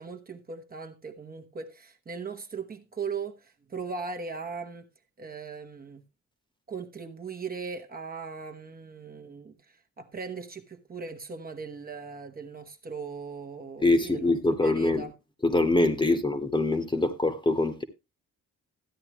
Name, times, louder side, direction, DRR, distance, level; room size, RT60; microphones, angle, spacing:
voice 1, 0.0-4.9 5.2-6.0 6.7-15.1 16.1-16.2, right 5 dB, 30° right, 1.1 m, -39 dB
voice 2, 13.8-15.0 15.4-17.8, left 2 dB, 15° left, 1.3 m, -24 dB
13.5 x 9.7 x 3.0 m
wide cardioid pair, 135°, 29 cm